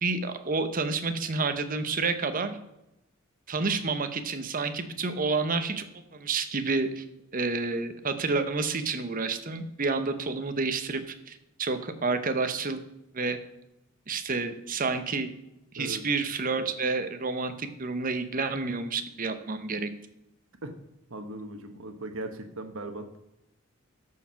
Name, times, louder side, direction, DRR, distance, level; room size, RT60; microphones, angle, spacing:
voice 1, 0.0-2.6 3.5-7.0 7.3-12.8 13.1-13.4 14.1-15.3 15.7-19.9, right 4 dB, 40° right, 9 dB, 0.8 m, -29 dB
voice 2, 21.1-23.2, right 2 dB, 70° right, 6 dB, 1.2 m, -38 dB
13.0 x 4.7 x 5.7 m, 0.88 s
head